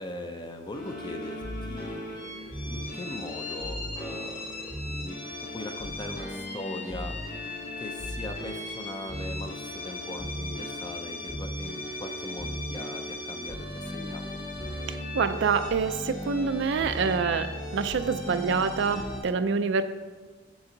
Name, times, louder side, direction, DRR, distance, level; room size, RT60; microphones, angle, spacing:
voice 1, 0.0-7.4 7.8-14.2, left 1 dB, 25° left, 5 dB, 0.4 m, -40 dB
sound 1, 0.7-19.2, left 1 dB, 45° left, 1.9 m, -36 dB
voice 2, 15.1-19.8, right 5 dB, 65° right, 10 dB, 0.4 m, -26 dB
7.1 x 6.8 x 3.8 m, 1.3 s
head